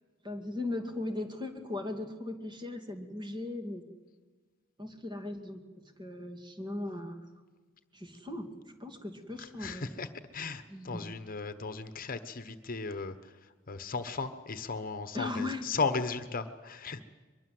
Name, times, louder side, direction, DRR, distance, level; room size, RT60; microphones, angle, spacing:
voice 1, 0.2-3.8 4.8-5.6 6.0-7.2 7.9-8.5 8.8-9.9 10.7-11.0 15.1-15.6, left 2 dB, 25° right, 4 dB, 2.6 m, -38 dB
voice 2, 9.4-10.1 10.3-13.3 13.7-17.0, left 4 dB, 45° left, 11 dB, 1.1 m, -36 dB
23.0 x 22.5 x 7.8 m, 1.3 s
head